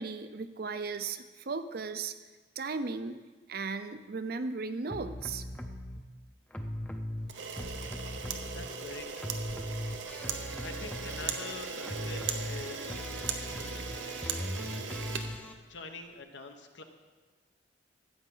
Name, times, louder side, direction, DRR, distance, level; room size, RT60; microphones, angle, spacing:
voice 1, 0.0-2.1 2.6-3.2 3.5-5.4, right 4 dB, 55° right, 10 dB, 0.5 m, -36 dB
sound 1, 4.9-6.0 6.5-8.9 9.2-15.5, left 1 dB, 5° left, 0.6 m, -39 dB
Camera, 7.3-16.0, right 6 dB, 85° right, 0.8 m, -38 dB
voice 2, 8.1-9.4 10.1-14.8 15.3-16.8, left 3 dB, 80° left, 6 dB, 1.0 m, -47 dB
14.0 x 8.4 x 3.9 m, 1.3 s
head